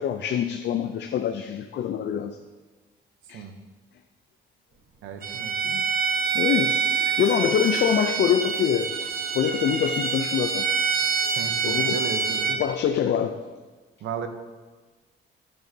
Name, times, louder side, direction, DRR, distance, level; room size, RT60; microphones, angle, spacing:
voice 1, 0.0-2.4 3.3-3.4 5.6-5.8 6.3-8.9 9.3-11.0 11.6-12.0 12.5-13.4, left 9 dB, 60° left, 8 dB, 0.5 m, -25 dB
voice 2, 5.0-5.6 11.3-12.6 14.0-14.3, right 7 dB, 85° right, 8 dB, 0.9 m, -35 dB
Bowed string instrument, 5.2-12.6, right 6 dB, 50° right, 1.0 m, -26 dB
10.5 x 9.3 x 2.8 m, 1.3 s
cardioid pair, 90°, 20 cm